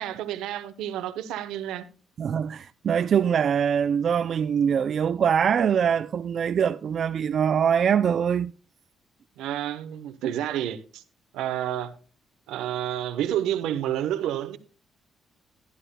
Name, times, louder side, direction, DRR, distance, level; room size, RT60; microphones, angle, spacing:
voice 1, 0.0-1.8 9.4-11.0 11.3-11.9 12.5-14.6, right 11 dB, 90° right, 1.0 m, -29 dB
voice 2, 2.2-8.5, right 7 dB, 55° right, 0.4 m, -23 dB
14.5 x 11.0 x 2.2 m
cardioid pair, 90°, 0 cm